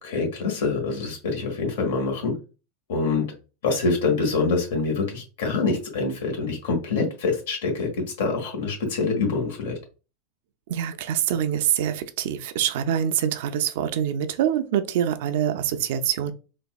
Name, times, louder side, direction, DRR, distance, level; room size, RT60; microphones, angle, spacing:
voice 1, 0.0-2.3 2.9-3.2 3.6-7.9 8.2-9.8, left 4 dB, 80° left, 1.5 m, -25 dB
voice 2, 10.7-16.3, right 10 dB, 70° right, 0.4 m, -25 dB
4.0 x 2.6 x 2.3 m
supercardioid pair, 150°, 0 cm